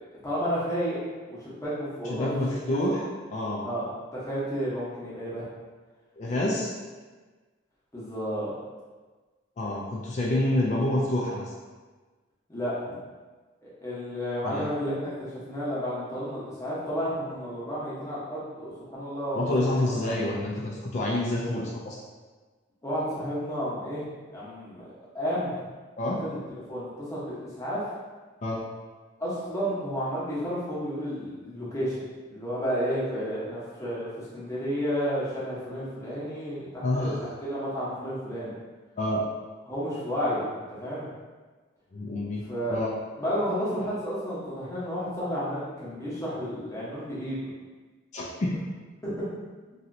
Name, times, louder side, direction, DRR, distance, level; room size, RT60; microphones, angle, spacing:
voice 1, 0.2-1.0 1.3-2.3 2.7-2.8 3.6-3.9 4.1-5.4 7.9-8.5 12.5-13.0 13.6-20.2 22.8-24.0 24.3-24.8 25.1-25.5 26.2-26.4 26.7-27.8 29.2-32.0 32.3-38.5 39.7-40.5 40.8-41.1 42.5-42.8 43.2-47.5 49.0-49.3, equal, 15° left, -9 dB, 0.8 m, -31 dB
voice 2, 2.0-3.7 6.2-6.7 9.6-11.5 14.4-14.6 19.3-22.0 26.0-26.2 28.4-28.6 36.8-37.2 39.0-39.2 41.9-42.9 48.1-48.6, left 1 dB, 35° left, -5 dB, 0.3 m, -28 dB
3.1 x 2.7 x 2.6 m, 1.3 s
head